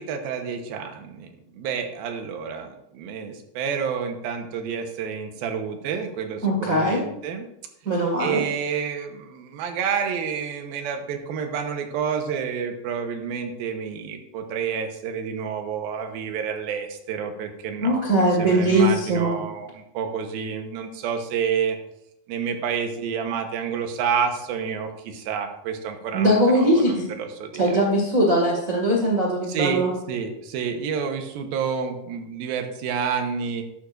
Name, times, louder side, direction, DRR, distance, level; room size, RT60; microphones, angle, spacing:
voice 1, 0.0-7.5 8.2-18.0 18.4-21.8 22.3-27.8 29.5-33.6, right 7 dB, 75° right, 5 dB, 2.8 m, -29 dB
voice 2, 6.4-7.0 7.8-8.4 17.8-19.4 26.1-27.1 27.6-29.9, right 1 dB, 35° right, -3 dB, 1.4 m, -20 dB
13.0 x 11.5 x 2.6 m, 0.83 s
omnidirectional pair, 4.5 m